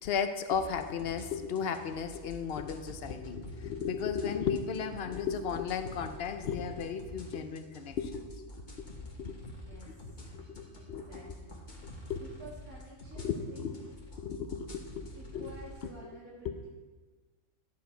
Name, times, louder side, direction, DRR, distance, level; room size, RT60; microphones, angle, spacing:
voice 1, 0.0-8.5 9.2-9.4 10.3-11.3 12.1-12.2 13.2-13.9 14.2-15.5 16.4-16.7, left 6 dB, 55° left, 8 dB, 0.8 m, -35 dB
sound 1, 0.5-15.9, left 1 dB, 35° left, 1.3 m, -48 dB
voice 2, 9.4-10.3 10.7-11.5 12.1-13.6 15.1-16.7, right 1 dB, 75° right, -7 dB, 2.3 m, -52 dB
11.5 x 7.5 x 4.5 m, 1.4 s
omnidirectional pair, 1.5 m